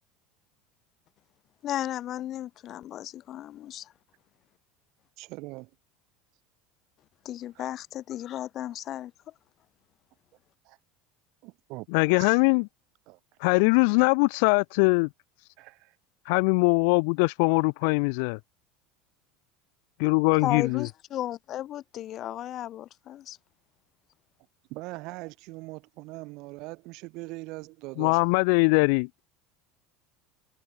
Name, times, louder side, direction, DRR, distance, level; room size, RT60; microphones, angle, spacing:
voice 1, 1.6-3.9 7.3-9.1 20.4-23.4, left 12 dB, 35° left, 3.3 m, -34 dB
voice 2, 5.2-5.7 7.6-7.7 10.6-10.8 11.4-11.9 12.2-12.4 13.1-13.2 15.6-16.0 17.8-17.9 24.7-28.3, right 24 dB, 55° right, 1.9 m, -41 dB
voice 3, 11.9-12.7 13.4-15.1 16.3-18.4 20.0-20.9 28.0-29.2, left 35 dB, 65° left, 0.8 m, -22 dB
cardioid pair, 160°, 0 cm